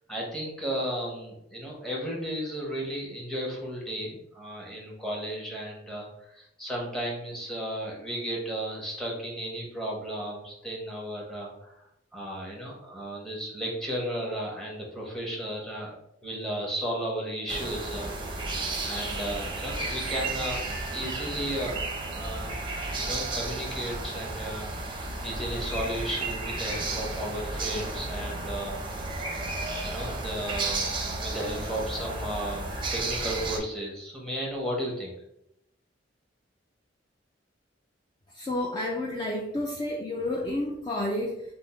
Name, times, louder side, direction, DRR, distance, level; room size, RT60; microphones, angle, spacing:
voice 1, 0.1-11.8 12.1-16.0 16.2-18.4 18.8-20.6 20.9-21.8 22.1-22.5 23.0-28.8 29.8-30.9 31.2-35.2, equal, ahead, -3 dB, 0.9 m, -34 dB
sound 1, 17.5-33.6, right 2 dB, 25° right, 0.6 m, -33 dB
voice 2, 38.3-41.4, left 1 dB, 25° left, -2 dB, 0.4 m, -30 dB
3.4 x 2.0 x 4.2 m, 0.80 s
head